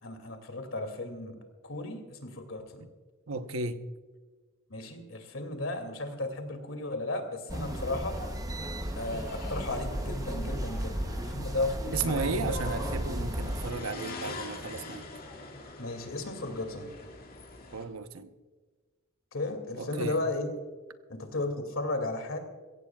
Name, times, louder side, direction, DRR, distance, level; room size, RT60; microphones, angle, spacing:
voice 1, 0.0-1.4 1.6-2.8 4.7-8.1 9.0-12.6 15.8-16.9 19.3-20.5 21.1-22.4, left 2 dB, 70° left, 2.6 m, -34 dB
voice 2, 3.3-3.8 11.9-15.0 17.7-18.3 19.8-20.2, right 4 dB, 85° right, 1.0 m, -34 dB
sound 1, 7.5-17.8, left 3 dB, 45° left, 2.2 m, -44 dB
sound 2, 7.5-13.7, right 1 dB, 20° right, 0.9 m, -34 dB
22.5 x 16.5 x 2.4 m
head